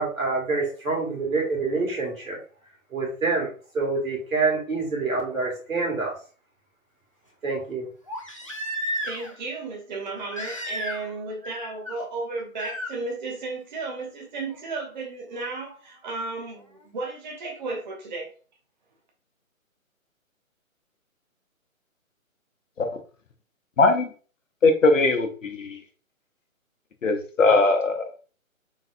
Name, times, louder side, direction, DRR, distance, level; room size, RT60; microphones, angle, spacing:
voice 1, 0.0-2.4 2.9-6.1 7.4-7.9, right 3 dB, 70° right, -1 dB, 2.1 m, -26 dB
Crying sobbing, 5.3-5.4 8.1-9.4 10.3-11.2 11.4-12.0 12.6-12.9 14.5-14.6, left 1 dB, 25° left, 0.4 m, -33 dB
voice 2, 9.0-18.3, right 3 dB, 35° right, 1 dB, 0.7 m, -34 dB
voice 3, 23.8-24.1 24.6-25.8 27.0-28.1, left 3 dB, 65° left, 6 dB, 0.9 m, -20 dB
3.9 x 3.7 x 2.5 m, 0.38 s
figure-of-eight pair, 145°, 42 cm